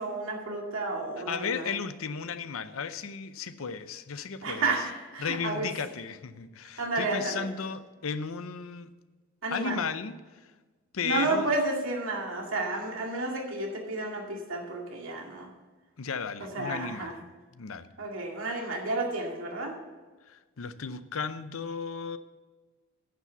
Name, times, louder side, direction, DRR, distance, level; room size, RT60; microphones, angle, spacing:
voice 1, 0.0-1.7 4.4-5.7 6.8-7.5 9.4-9.8 11.0-15.5 16.4-17.1 18.0-19.8, right 2 dB, 75° right, 0 dB, 2.2 m, -31 dB
voice 2, 1.3-4.7 5.2-8.9 9.5-10.1 10.9-11.5 16.0-17.1 17.5-17.9 20.3-22.2, left 6 dB, 80° left, 13 dB, 0.6 m, -34 dB
10.5 x 7.3 x 6.8 m, 1.3 s
head